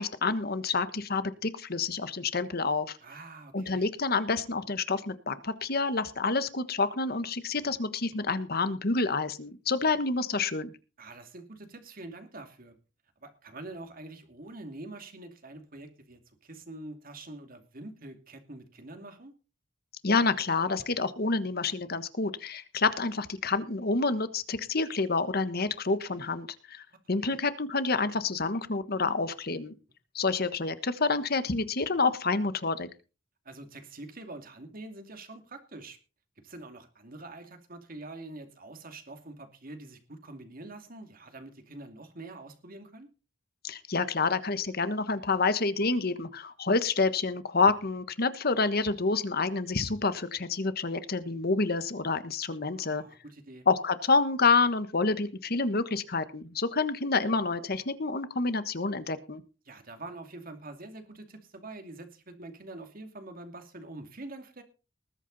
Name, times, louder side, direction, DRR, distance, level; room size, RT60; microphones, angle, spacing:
voice 1, 0.0-3.0 3.5-10.7 20.0-29.7 30.1-32.9 43.6-53.0 53.7-59.4, left 4 dB, 55° left, 12 dB, 1.4 m, -28 dB
voice 2, 3.0-3.9 11.0-12.8 13.2-19.3 26.9-27.0 27.3-27.4 33.4-36.0 36.4-43.1 52.8-53.7 59.6-64.6, right 2 dB, 50° right, 6 dB, 2.6 m, -45 dB
20.0 x 8.3 x 4.1 m, 0.33 s
head